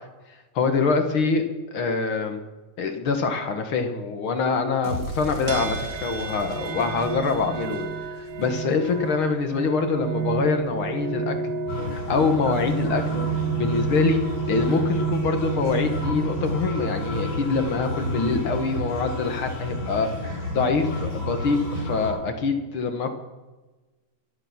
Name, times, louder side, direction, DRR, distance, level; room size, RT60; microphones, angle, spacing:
voice 1, 0.6-1.4 1.7-2.4 2.8-7.9 8.2-11.5 11.9-13.2 13.6-23.1, left 4 dB, 50° left, 6 dB, 2.0 m, -25 dB
sound 1, 4.8-9.1, right 1 dB, 85° right, 4.8 m, -37 dB
sound 2, 5.5-19.0, right 7 dB, 55° right, 1.2 m, -31 dB
sound 3, 11.7-22.1, left 1 dB, 85° left, 8.2 m, -31 dB
23.5 x 7.9 x 6.0 m, 1.1 s
omnidirectional pair, 3.4 m